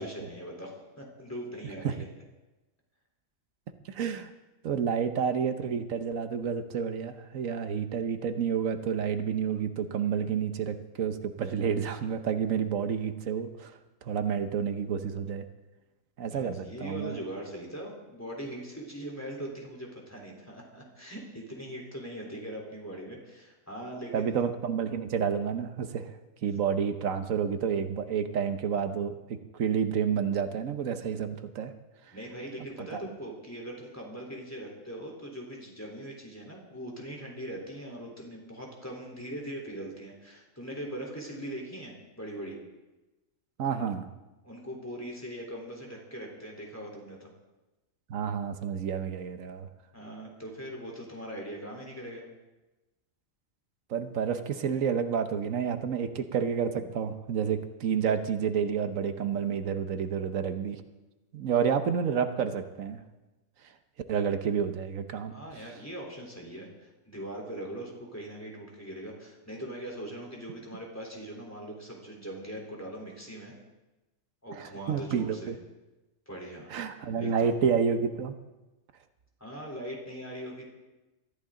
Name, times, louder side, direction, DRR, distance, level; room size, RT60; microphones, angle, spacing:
voice 1, 0.0-2.0 16.3-24.4 32.1-42.6 44.4-47.3 49.9-52.2 65.3-73.5 74.4-75.5 76.3-76.7 77.2-77.5 79.4-80.7, right 1 dB, 10° left, -1 dB, 3.7 m, -41 dB
voice 2, 3.9-4.3 4.6-13.7 14.0-15.4 16.2-17.2 24.1-26.1 26.4-31.7 32.8-33.0 43.6-44.1 48.1-49.7 53.9-60.8 61.3-63.0 64.1-65.3 74.5-75.5 76.7-78.3, right 7 dB, 90° right, 8 dB, 1.3 m, -29 dB
23.0 x 14.0 x 3.8 m, 1.1 s
omnidirectional pair, 1.3 m